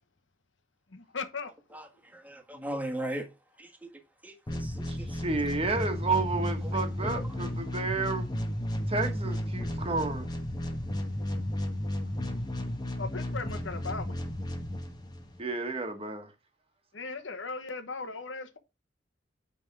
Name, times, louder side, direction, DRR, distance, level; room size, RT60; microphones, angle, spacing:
voice 1, 0.9-1.5 13.0-14.2 16.9-18.6, left 4 dB, 80° left, 1.0 m, -37 dB
voice 2, 2.1-3.2 3.6-3.9 4.2-5.2 7.0-7.1, right 1 dB, 10° right, 1.5 m, -37 dB
sound 1, 4.5-15.4, left 1 dB, 20° left, 1.1 m, -33 dB
voice 3, 4.9-8.3 8.9-10.3 15.4-16.3, right 3 dB, 30° right, 1.3 m, -31 dB
9.0 x 3.6 x 4.6 m
head